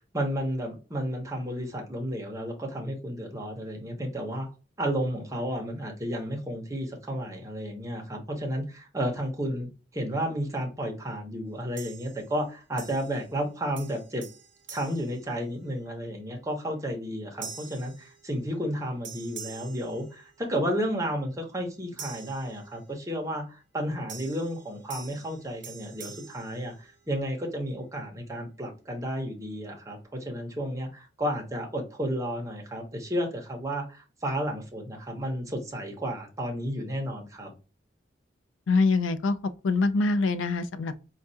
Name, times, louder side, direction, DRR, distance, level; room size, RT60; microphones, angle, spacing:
voice 1, 0.1-4.5 4.8-14.2 14.7-37.5, equal, 15° right, 0.8 m, -32 dB
sound 1, 11.8-12.4 12.8-13.5 13.8-15.9 16.4-16.7 17.4-18.7 19.0-20.7 22.0-23.1 24.1-27.3, right 6 dB, 70° right, 0.9 m, -46 dB
voice 2, 38.7-39.4 39.6-41.0, left 3 dB, 75° left, 0.4 m, -24 dB
4.4 x 2.3 x 2.7 m
head